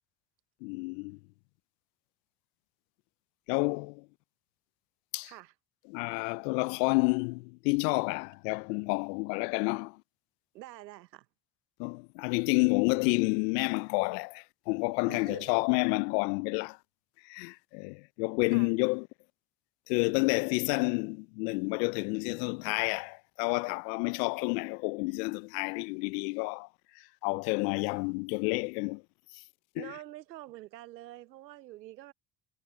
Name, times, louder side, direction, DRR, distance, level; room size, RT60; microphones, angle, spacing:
voice 1, 0.6-1.2 3.5-4.0 5.1-5.3 5.9-10.0 11.8-16.8 17.3-19.1 19.9-26.7 27.2-29.0 29.8-29.9, left 31 dB, 75° left, 0.7 m, -30 dB
voice 2, 5.2-5.5 10.5-11.3 15.1-15.5 18.5-18.7 29.8-32.1, right 15 dB, 90° right, 1.1 m, -46 dB
hypercardioid pair, 55°, 49 cm